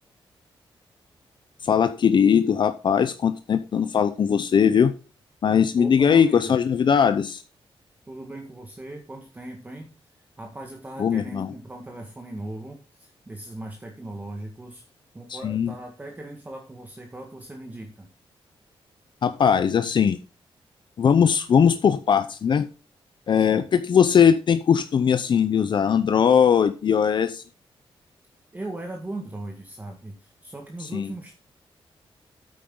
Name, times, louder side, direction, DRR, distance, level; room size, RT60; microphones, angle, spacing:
voice 1, 1.6-4.9 5.4-7.4 11.0-11.5 15.3-15.7 19.2-20.2 21.0-22.7 23.3-27.4 30.9-31.1, left 7 dB, 55° left, 10 dB, 0.6 m, -20 dB
voice 2, 5.8-6.6 8.1-14.8 15.1-18.1 23.4-23.7 28.5-31.3, right 2 dB, 15° right, 2 dB, 1.6 m, -39 dB
9.2 x 8.7 x 3.7 m, 0.35 s
wide cardioid pair, 145°, 10 cm